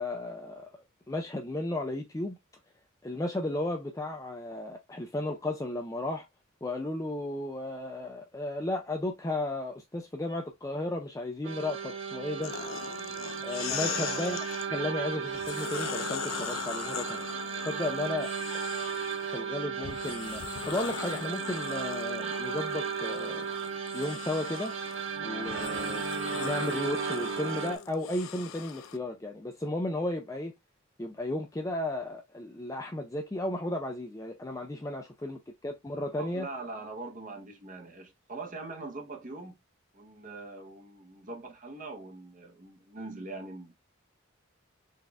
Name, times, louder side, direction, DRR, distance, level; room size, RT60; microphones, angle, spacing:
voice 1, 0.0-2.4 3.0-6.3 6.6-12.5 13.4-14.4 14.7-17.2 17.6-18.6 19.3-23.5 23.9-24.7 25.2-26.0 26.4-30.5 31.0-36.5, left 1 dB, 15° left, 0.4 m, -34 dB
sound 1, 11.4-27.8, right 6 dB, 65° right, 1.0 m, -35 dB
sound 2, 12.4-14.7 15.3-19.3 19.8-29.0, left 8 dB, 75° left, 0.5 m, -40 dB
voice 2, 13.7-14.3 18.0-18.2 25.4-25.8 36.1-39.6 39.9-43.7, right 3 dB, 40° right, 0.9 m, -42 dB
4.1 x 2.4 x 3.3 m
head